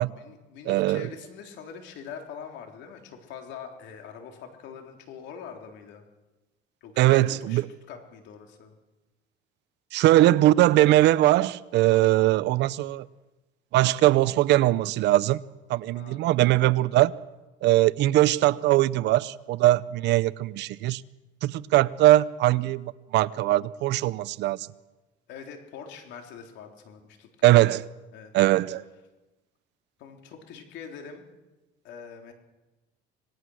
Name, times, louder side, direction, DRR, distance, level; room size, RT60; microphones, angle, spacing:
voice 1, 0.1-6.0 6.8-8.7 15.9-16.2 25.3-27.8 28.1-28.3 30.0-31.3 31.8-32.3, left 7 dB, 70° left, 3.5 m, -44 dB
voice 2, 0.7-1.1 7.0-7.7 9.9-13.1 13.7-15.4 15.7-17.1 17.6-21.0 21.4-24.6 27.4-27.8 28.3-28.8, right 15 dB, 65° right, 0.7 m, -21 dB
26.0 x 19.0 x 6.4 m
cardioid pair, 125°, 19 cm